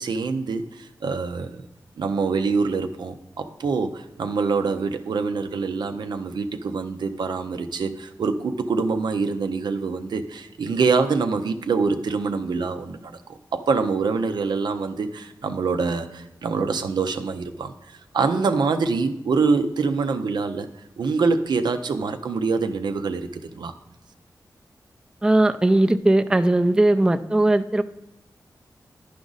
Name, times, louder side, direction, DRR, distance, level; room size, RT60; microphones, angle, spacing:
voice 1, 0.0-1.6 2.0-17.7 18.1-20.7 21.0-23.3 23.5-23.7, right 4 dB, 85° right, 0.5 m, -25 dB
voice 2, 25.2-27.8, right 1 dB, 10° right, 0.4 m, -18 dB
10.5 x 5.0 x 3.9 m
cardioid pair, 65°, 7 cm